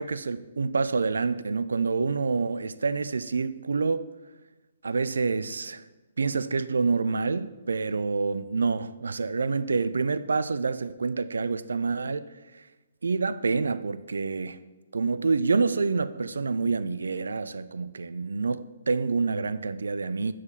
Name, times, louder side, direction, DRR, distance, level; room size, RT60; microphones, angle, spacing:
voice 1, 0.0-4.1 4.8-5.8 6.2-12.6 13.0-14.6 14.9-20.3, right 4 dB, 75° right, 0.3 m, -27 dB
5.0 x 4.2 x 5.5 m
figure-of-eight pair, 135°, 0 cm